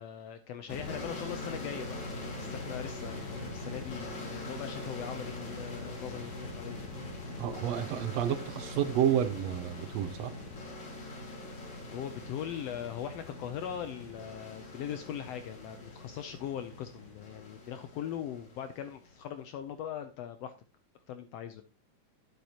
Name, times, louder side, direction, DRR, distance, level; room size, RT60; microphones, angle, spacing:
voice 1, 0.0-2.0 2.4-7.0 11.8-20.5 21.1-21.6, left 9 dB, 85° left, 9 dB, 1.4 m, -40 dB
sound 1, 0.7-19.3, left 2 dB, 50° left, 3.1 m, -42 dB
voice 2, 7.4-10.3, right 9 dB, 80° right, 11 dB, 1.6 m, -30 dB
10.5 x 8.2 x 2.9 m, 0.33 s
omnidirectional pair, 3.5 m